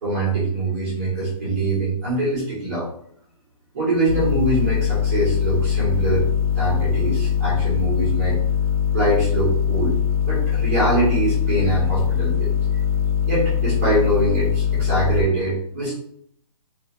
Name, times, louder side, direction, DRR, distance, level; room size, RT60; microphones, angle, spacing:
voice 1, 0.0-2.9 3.7-6.3 6.5-8.4 8.9-10.0 10.3-12.5 13.3-15.9, right 2 dB, 20° right, -8 dB, 1.2 m, -23 dB
sound 1, 4.1-15.2, left 8 dB, 65° right, 0.6 m, -21 dB
2.6 x 2.5 x 2.9 m, 0.66 s
hypercardioid pair, 175°, 20 cm